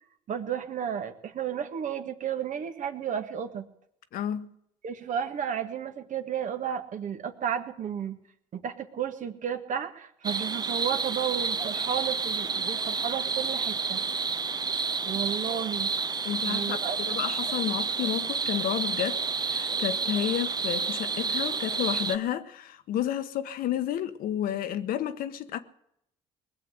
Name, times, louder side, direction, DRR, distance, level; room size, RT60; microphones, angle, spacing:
voice 1, 0.3-3.7 4.8-8.2 8.5-14.0 15.0-15.9 16.4-17.0, right 8 dB, 55° right, 1.6 m, -33 dB
voice 2, 4.1-4.5 16.2-16.8 17.1-25.6, left 10 dB, 70° left, 1.1 m, -31 dB
sound 1, 10.2-22.2, right 5 dB, 25° right, 0.7 m, -30 dB
20.0 x 7.5 x 8.1 m
supercardioid pair, 80°, 15 cm